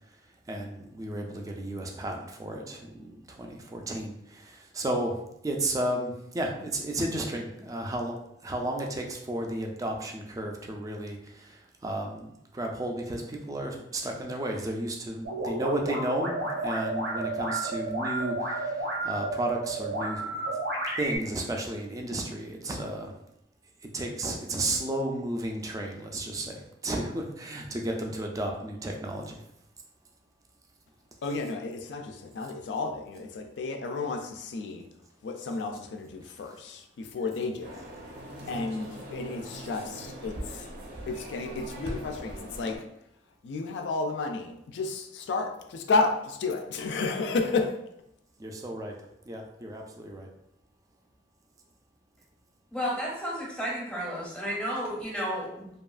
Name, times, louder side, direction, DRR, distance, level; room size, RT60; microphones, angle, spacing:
voice 1, 0.5-5.2 5.4-8.1 8.4-20.6 21.0-23.1 23.9-29.4 38.4-38.6 48.4-49.0 49.3-50.3, right 1 dB, 20° right, 1 dB, 0.3 m, -33 dB
sound 1, 15.2-21.2, right 2 dB, 90° right, 0.9 m, -32 dB
voice 2, 31.2-34.9 35.2-37.9 38.5-40.7 41.1-42.9 43.4-47.8, left 3 dB, 80° left, 4 dB, 0.3 m, -32 dB
sound 2, 37.6-42.8, equal, 65° right, 0.6 m, -41 dB
voice 3, 52.7-55.7, equal, 5° left, -5 dB, 0.7 m, -32 dB
2.8 x 2.3 x 2.3 m, 0.79 s
head